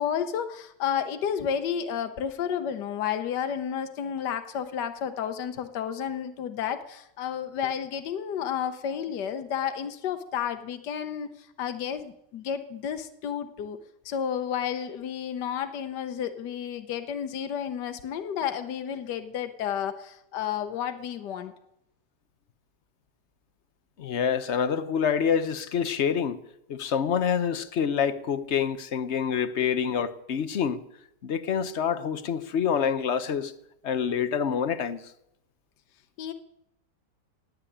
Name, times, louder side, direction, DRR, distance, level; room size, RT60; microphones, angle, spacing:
voice 1, 0.0-13.8 14.0-21.5 36.2-36.3, left 8 dB, 75° left, 1.5 m, -31 dB
voice 2, 24.0-26.4 26.7-30.8 31.2-33.5 33.8-35.0, left 7 dB, 50° left, 0.9 m, -27 dB
17.5 x 8.1 x 9.9 m
omnidirectional pair, 1.9 m